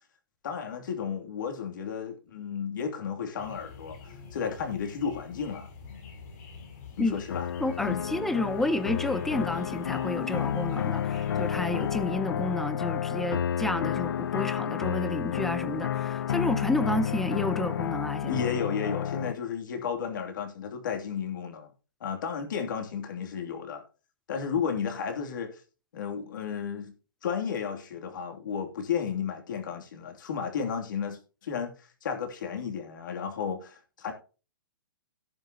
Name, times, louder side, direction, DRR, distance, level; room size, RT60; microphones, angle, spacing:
voice 1, 0.4-5.7 7.0-7.5 7.8-8.1 18.3-21.7 22.0-23.8 24.3-25.6 25.9-26.9 27.2-34.1, left 7 dB, 65° left, 2.8 m, -33 dB
sound 1, 3.4-12.1, left 5 dB, 45° left, 5.9 m, -46 dB
sound 2, 7.3-19.3, left 9 dB, 80° left, 0.5 m, -30 dB
voice 2, 7.6-18.4, left 1 dB, ahead, 0.6 m, -30 dB
17.5 x 6.5 x 2.9 m
hypercardioid pair, 160°, 11 cm